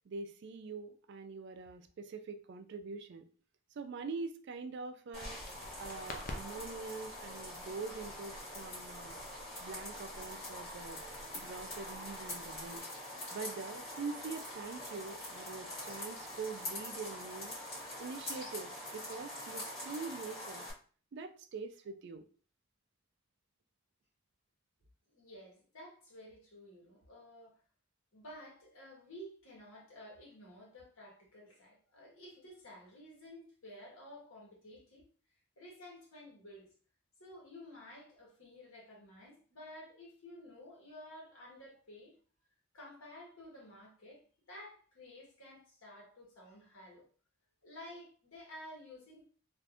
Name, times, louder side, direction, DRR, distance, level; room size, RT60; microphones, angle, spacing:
voice 1, 0.1-3.3 3.8-5.4 5.8-9.2 9.6-11.0 11.3-12.9 13.3-17.5 18.0-20.7 21.1-22.2, right 4 dB, 55° right, 8 dB, 0.3 m, -44 dB
sound 1, 5.1-20.7, left 1 dB, 55° left, 1.6 m, -44 dB
sound 2, 5.2-12.8, left 1 dB, 40° left, 0.4 m, -51 dB
voice 2, 25.1-27.6 28.1-35.0 35.6-36.7 37.2-42.2 42.7-44.2 44.5-47.1 47.6-49.2, left 1 dB, 80° left, -3 dB, 1.3 m, -52 dB
3.4 x 2.5 x 2.4 m, 0.41 s
head